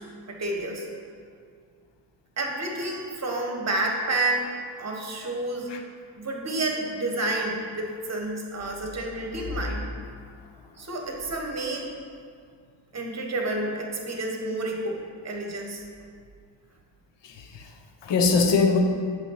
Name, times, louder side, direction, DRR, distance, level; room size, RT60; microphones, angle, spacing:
voice 1, 0.3-0.9 2.4-4.5 4.8-5.7 6.2-9.9 10.8-11.8 12.9-15.8, right 2 dB, 35° right, 1 dB, 1.1 m, -30 dB
voice 2, 17.2-18.8, left 4 dB, 70° left, 4 dB, 0.8 m, -23 dB
8.2 x 3.5 x 5.6 m, 2.2 s
wide cardioid pair, 135°, 44 cm